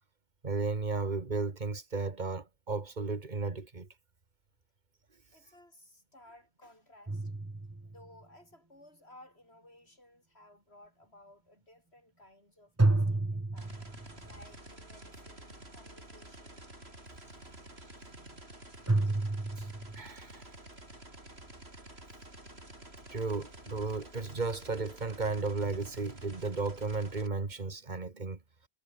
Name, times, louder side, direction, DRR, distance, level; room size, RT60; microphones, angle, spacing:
voice 1, 0.4-3.9 19.6-19.7 20.0-20.4 23.1-28.4, right 3 dB, 45° right, 2.2 m, -34 dB
voice 2, 5.3-7.3 7.8-13.8 14.2-16.9 17.7-18.3, left 1 dB, 80° left, 8.5 m, -58 dB
sound 1, 7.1-8.2 12.8-14.3 18.9-20.0, right 2 dB, 15° right, 0.9 m, -30 dB
sound 2, 13.6-27.3, right 1 dB, 75° right, 7.0 m, -50 dB
omnidirectional pair, 1.1 m